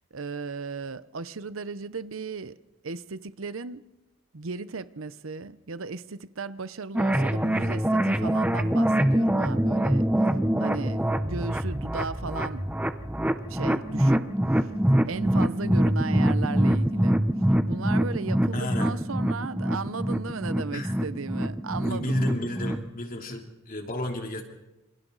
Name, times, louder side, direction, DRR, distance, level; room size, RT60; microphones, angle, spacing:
voice 1, 0.1-2.6 2.8-3.8 4.3-10.1 10.6-12.7 13.5-14.3 14.6-14.7 15.0-17.2 17.5-22.3, right 4 dB, 80° right, 0.8 m, -36 dB
sound 1, 6.9-22.9, right 1 dB, 5° right, 0.8 m, -25 dB
voice 2, 18.5-18.9 20.7-20.9 21.8-24.4, left 1 dB, 45° left, 3.1 m, -31 dB
27.5 x 27.5 x 4.0 m
head